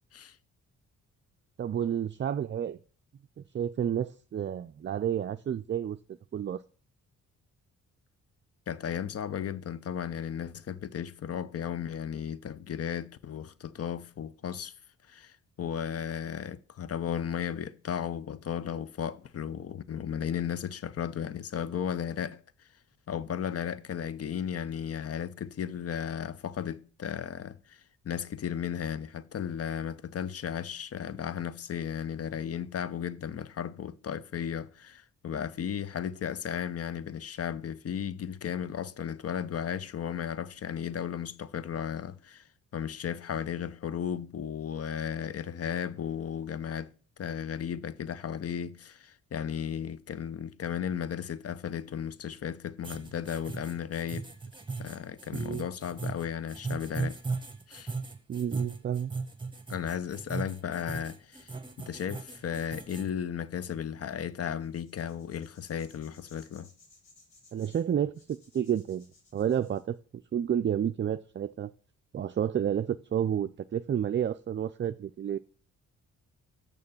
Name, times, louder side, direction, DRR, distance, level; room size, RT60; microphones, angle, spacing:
voice 1, 1.6-2.8 3.4-6.0 6.3-6.6 55.3-55.7 58.3-59.1 67.5-69.1 69.3-70.0 70.3-71.7 72.1-75.4, right 9 dB, 35° right, 0.5 m, -30 dB
voice 2, 8.7-14.7 15.1-22.4 23.1-42.5 42.7-46.9 47.2-54.3 54.8-57.2 57.7-57.9 59.7-66.7, left 8 dB, 45° left, 0.7 m, -35 dB
sound 1, 52.8-63.1, right 4 dB, 15° right, 1.3 m, -37 dB
sound 2, 64.6-69.8, left 3 dB, 65° left, 5.5 m, -60 dB
6.8 x 6.5 x 7.1 m
supercardioid pair, 60°, 33 cm